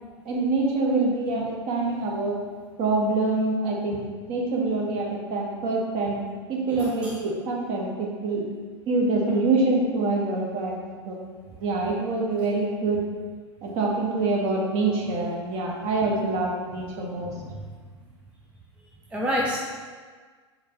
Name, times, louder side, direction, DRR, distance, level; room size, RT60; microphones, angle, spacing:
voice 1, 0.3-2.3 2.8-4.0 4.3-6.2 6.5-8.4 8.9-10.7 11.1-11.2 11.6-13.0 13.6-17.3, right 3 dB, 40° right, -2 dB, 1.0 m, -25 dB
voice 2, 6.7-7.2 17.1-17.6 19.1-19.6, equal, 5° right, -3 dB, 0.4 m, -29 dB
4.3 x 2.7 x 4.5 m, 1.5 s
figure-of-eight pair, 95°, 15 cm